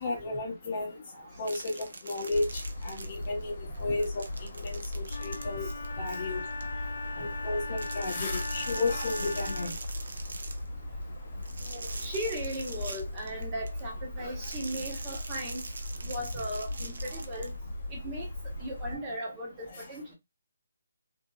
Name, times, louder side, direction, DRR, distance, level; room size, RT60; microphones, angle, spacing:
voice 1, 0.0-0.9 1.4-4.3 4.5-5.7 6.0-6.4 7.2-9.7, left 3 dB, 30° left, 0.8 m, -33 dB
sound 1, 1.4-3.4 3.7-6.6 7.7-10.7 11.4-13.8 14.4-17.5, right 3 dB, 70° right, 0.6 m, -43 dB
sound 2, 2.3-19.0, left 1 dB, 50° left, 1.1 m, -38 dB
Wind instrument woodwind instrument, 5.1-9.9, left 4 dB, 70° left, 0.4 m, -39 dB
voice 2, 11.6-15.6 16.0-17.5 17.9-18.3 18.6-20.1, equal, 15° right, 0.9 m, -37 dB
2.7 x 2.6 x 2.3 m
hypercardioid pair, 170°, 0 cm